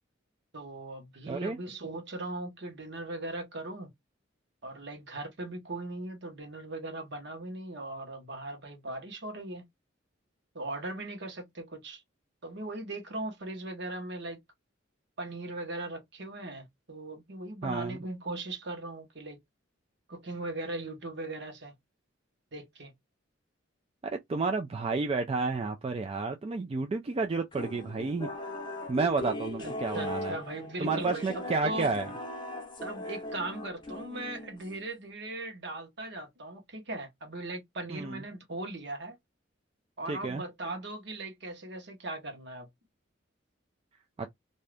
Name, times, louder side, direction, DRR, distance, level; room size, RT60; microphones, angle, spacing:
voice 1, 0.5-3.9 4.6-9.6 10.5-12.0 12.4-14.4 15.2-19.4 20.1-21.7 22.5-22.9 29.6-31.9 32.8-39.2 40.0-42.7, right 2 dB, 60° right, 1.1 m, -39 dB
voice 2, 1.3-1.6 17.6-18.0 24.1-28.3 28.9-30.3 30.8-32.1 37.9-38.2 40.1-40.4 44.2-44.3, right 4 dB, 30° right, 0.3 m, -31 dB
sound 1, 27.5-34.9, left 2 dB, 25° left, 0.7 m, -39 dB
2.7 x 2.4 x 3.2 m
head